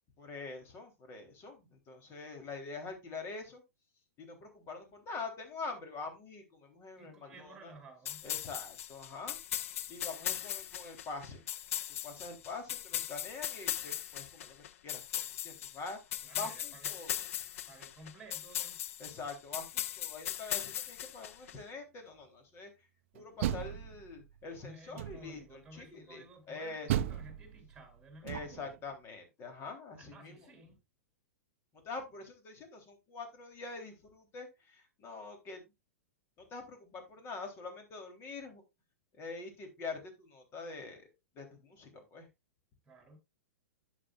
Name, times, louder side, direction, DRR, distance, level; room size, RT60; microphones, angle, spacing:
voice 1, 0.2-3.6 4.2-7.7 8.2-9.4 9.9-11.4 12.0-17.3 19.0-22.7 23.1-26.9 28.2-30.5 31.8-35.6 36.4-38.6 39.2-41.1 41.4-42.3, left 4 dB, 30° left, 3.6 m, -45 dB
voice 2, 7.0-8.3 16.2-17.0 17.7-18.8 24.6-28.7 30.0-30.8 42.9-43.2, right 2 dB, 5° right, 3.5 m, -54 dB
sound 1, 8.1-21.5, left 11 dB, 60° left, 0.6 m, -39 dB
Door, 23.1-24.4 24.9-25.5 26.9-28.8, right 11 dB, 55° right, 0.6 m, -36 dB
11.0 x 8.5 x 2.5 m
hypercardioid pair, 110°, 8 cm